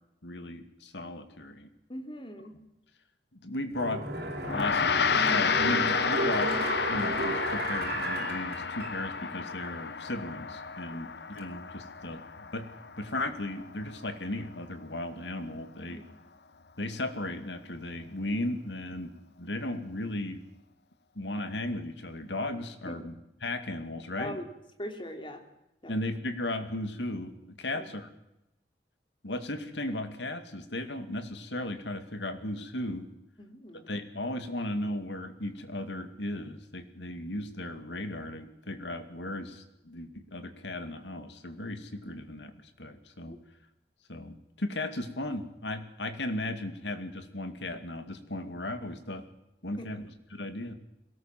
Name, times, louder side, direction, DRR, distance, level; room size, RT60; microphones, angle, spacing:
voice 1, 0.2-1.7 3.3-4.0 4.5-6.5 6.9-12.7 13.0-16.0 16.8-20.4 21.2-24.4 25.9-28.1 29.2-33.1 33.9-43.4 44.1-49.2 49.6-50.0 50.3-50.7, left 1 dB, 90° left, 8 dB, 2.5 m, -36 dB
voice 2, 1.9-2.6 15.9-16.0 22.9-23.0 24.2-24.5 24.8-25.4 25.8-25.9 27.7-27.8 33.4-33.9 43.3-43.4 49.8-49.9, left 1 dB, 30° left, 4 dB, 3.1 m, -40 dB
sound 1, 3.7-9.3 9.7-9.8, right 2 dB, 65° right, 5.1 m, -34 dB
Gong, 4.4-14.0, left 6 dB, 65° left, 0.8 m, -31 dB
22.0 x 18.0 x 7.7 m, 0.88 s
head